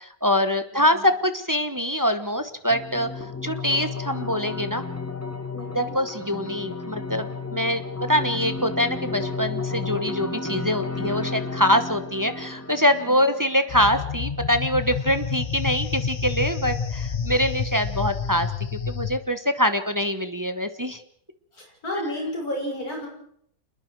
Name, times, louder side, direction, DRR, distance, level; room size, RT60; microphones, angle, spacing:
voice 1, 0.0-3.1 3.4-4.8 5.7-7.8 8.1-18.5 18.9-21.0, equal, 15° right, 9 dB, 0.8 m, -24 dB
voice 2, 0.7-1.0 5.5-5.9 13.0-13.3 21.5-23.1, left 1 dB, 55° left, -1 dB, 6.9 m, -32 dB
sound 1, 2.7-13.7, left 4 dB, 10° left, 1.1 m, -33 dB
sound 2, 13.7-19.2, left 6 dB, 35° left, 0.7 m, -29 dB
28.0 x 21.0 x 4.7 m, 0.69 s
omnidirectional pair, 1.9 m